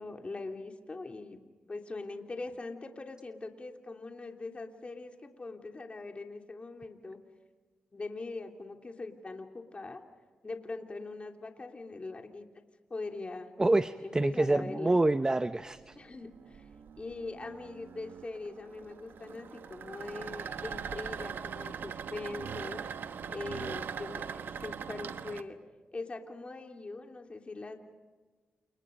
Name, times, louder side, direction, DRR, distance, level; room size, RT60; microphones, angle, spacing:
voice 1, 0.0-1.4 1.7-7.2 7.9-10.0 10.4-12.4 12.9-13.5 14.0-15.0 15.9-16.7 17.0-22.8 23.3-25.6 25.9-27.8, left 3 dB, 35° left, 4 dB, 3.1 m, -42 dB
voice 2, 13.6-16.0, right 2 dB, 20° right, 12 dB, 0.8 m, -27 dB
sound 1, 15.6-25.4, right 7 dB, 75° right, 1.1 m, -41 dB
29.5 x 27.5 x 5.3 m, 1.4 s
cardioid pair, 75°, 4 cm